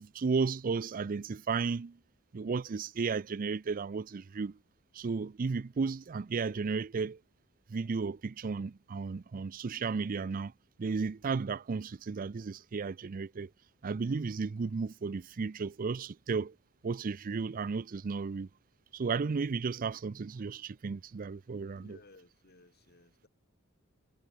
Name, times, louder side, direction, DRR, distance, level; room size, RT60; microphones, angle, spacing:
voice 1, 0.0-2.0 2.3-4.6 4.9-7.2 7.7-10.5 10.8-13.5 13.8-16.6 16.8-18.5 18.9-22.0, right 4 dB, 40° right, 0.4 m, -34 dB
voice 2, 21.7-23.3, left 2 dB, 45° left, 3.2 m, -58 dB
head